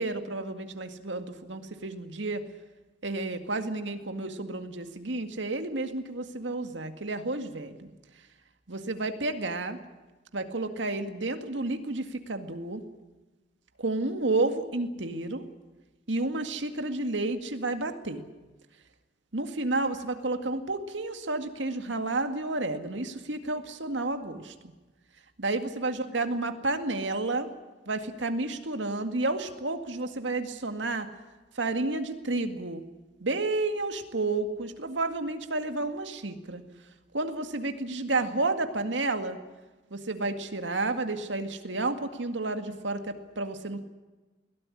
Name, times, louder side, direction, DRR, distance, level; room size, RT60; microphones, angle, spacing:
voice 1, 0.0-2.4 3.0-7.9 8.7-9.8 10.3-12.8 13.8-15.4 16.1-18.2 19.3-24.5 25.4-27.5 27.9-31.1 31.6-32.8 33.2-36.6 37.1-39.4 39.9-43.8, right 2 dB, 90° right, 7 dB, 2.0 m, -31 dB
22.0 x 16.5 x 9.9 m, 1.2 s
head